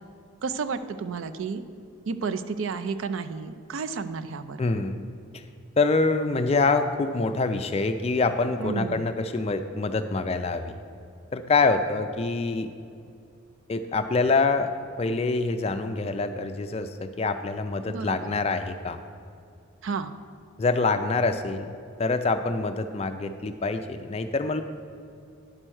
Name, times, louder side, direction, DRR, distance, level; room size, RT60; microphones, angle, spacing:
voice 1, 0.4-1.6 2.1-4.6 8.6-9.0 17.9-18.3 19.8-20.1, right 5 dB, 65° right, 10 dB, 0.4 m, -31 dB
voice 2, 4.6-5.0 5.8-10.8 11.3-12.7 13.7-14.7 15.0-19.0 20.6-21.7 22.0-24.6, left 3 dB, 30° left, 8 dB, 0.3 m, -25 dB
10.0 x 4.4 x 6.2 m, 2.4 s
head